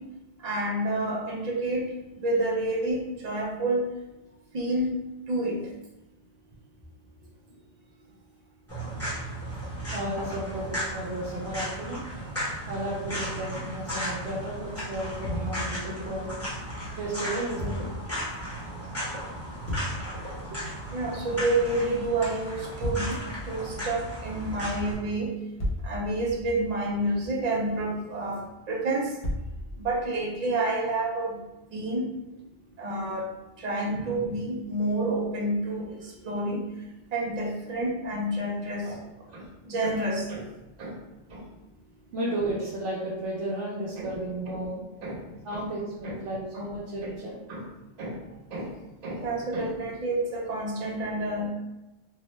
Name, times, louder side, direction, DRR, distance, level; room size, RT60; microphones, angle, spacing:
voice 1, 0.4-1.9 2.2-3.9 4.5-4.9 5.3-5.6 15.3-15.4 17.8-17.9 20.9-23.2 23.5-25.3 25.8-29.1 29.8-31.4 31.7-32.0 32.8-33.2 33.6-36.0 36.2-36.7 37.1-38.9 39.3-40.5 40.8-40.9 41.3-41.4 44.0-44.1 44.5-44.6 45.0-45.2 45.5-45.6 46.0-46.2 46.5-46.7 47.5-47.6 48.0-48.2 48.5-48.7 49.0-51.5, right 2 dB, 50° right, -2 dB, 0.5 m, -29 dB
sound 1, 8.7-24.9, equal, 15° left, 0.9 m, -35 dB
voice 2, 9.9-12.0 12.7-16.3 17.0-17.9 18.3-18.4 20.5-20.6 38.8-39.0 42.1-44.8 45.4-47.4, right 1 dB, 75° right, -6 dB, 0.9 m, -33 dB
sound 2, 15.2-16.0 17.6-18.1 19.7-20.2 22.8-23.4 25.6-27.0 29.2-30.1, left 1 dB, 40° left, 0.7 m, -34 dB
2.7 x 2.0 x 3.1 m, 1.0 s
omnidirectional pair, 1.2 m